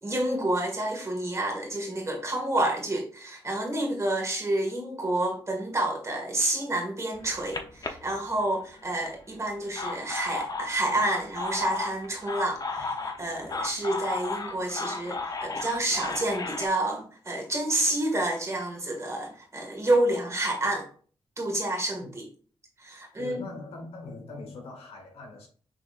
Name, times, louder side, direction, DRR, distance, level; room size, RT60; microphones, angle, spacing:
voice 1, 0.0-20.9 21.4-22.3 22.8-23.4, right 1 dB, 30° right, 1.7 m, -29 dB
sound 1, 7.1-8.8 9.5-16.7, left 3 dB, 40° left, 0.7 m, -34 dB
voice 2, 23.2-25.5, left 3 dB, 85° left, 1.6 m, -41 dB
6.3 x 3.4 x 2.4 m
cardioid pair, 95°, 10 cm